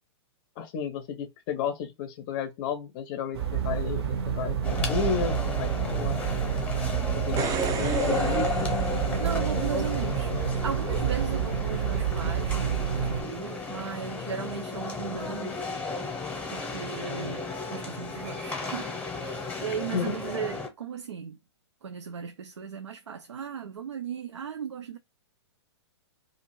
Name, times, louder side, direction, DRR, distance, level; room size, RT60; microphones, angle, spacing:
voice 1, 0.6-6.5 7.2-8.7 19.9-20.2, left 6 dB, 40° left, 0.5 m, -33 dB
sound 1, 3.3-13.2, right 8 dB, 65° right, 0.7 m, -29 dB
sound 2, 4.6-20.7, left 3 dB, 10° left, 0.8 m, -34 dB
sound 3, 7.2-9.7 12.8-12.9, right 6 dB, 25° right, 0.5 m, -34 dB
voice 2, 9.2-10.3 10.6-15.7 16.5-18.9 19.2-21.4 21.8-25.0, right 7 dB, 85° right, 0.4 m, -37 dB
2.5 x 2.4 x 3.0 m
hypercardioid pair, 115°, 15 cm